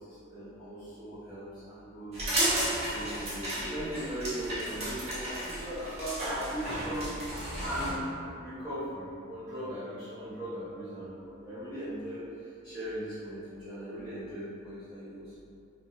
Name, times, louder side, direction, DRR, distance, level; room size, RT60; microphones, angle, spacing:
voice 1, 0.0-2.2 2.8-7.1 7.6-8.0 8.4-12.2 12.6-15.4, equal, 15° left, -21 dB, 1.1 m, -39 dB
sound 1, 2.1-7.9, right 1 dB, 30° right, 0.8 m, -33 dB
2.8 x 2.3 x 2.5 m, 2.5 s
head